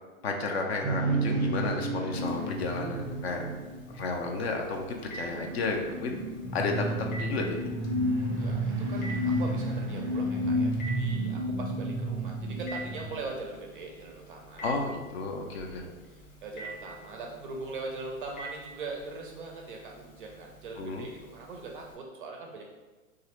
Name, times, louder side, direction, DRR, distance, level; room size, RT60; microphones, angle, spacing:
voice 1, 0.2-3.4 3.9-6.2 6.5-7.6 14.6-15.9 20.8-21.1, left 3 dB, 50° left, 2 dB, 0.5 m, -32 dB
sound 1, 0.8-4.4 5.0-13.2, right 1 dB, 10° right, 0.8 m, -31 dB
Telephone, 2.1-21.9, right 2 dB, 65° left, 0.9 m, -48 dB
voice 2, 8.1-14.7 15.6-22.6, right 3 dB, 40° right, 1 dB, 0.4 m, -41 dB
3.1 x 2.5 x 2.9 m, 1.3 s
hypercardioid pair, 125°, 43 cm